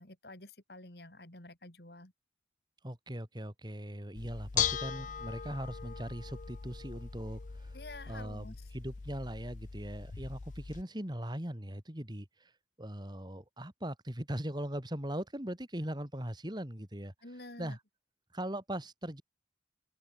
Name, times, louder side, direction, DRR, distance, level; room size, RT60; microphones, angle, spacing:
voice 1, 0.0-2.1 7.7-8.6 17.2-17.8, left 2 dB, 60° left, 4.1 m, -49 dB
voice 2, 2.8-7.7 8.1-12.5 12.8-17.1 17.6-17.8 18.3-19.2, right 1 dB, 25° right, 2.6 m, -40 dB
Bell / Dishes pots and pans, 4.2-10.8, left 8 dB, 45° left, 0.5 m, -39 dB
head